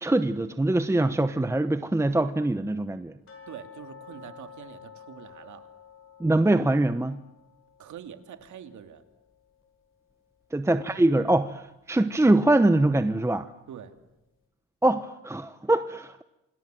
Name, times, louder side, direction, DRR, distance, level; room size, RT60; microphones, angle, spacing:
voice 1, 0.0-3.1 6.2-7.2 10.5-13.5 14.8-16.2, right 2 dB, 10° right, 1.0 m, -23 dB
sound 1, 3.3-10.1 10.4-10.5 11.0-11.1 11.7-11.8, left 7 dB, 45° left, 6.3 m, -51 dB
voice 2, 3.5-5.7 7.8-9.0 13.7-13.9, right 9 dB, 75° right, 2.7 m, -44 dB
28.0 x 26.0 x 7.7 m
cardioid pair, 90°, 30 cm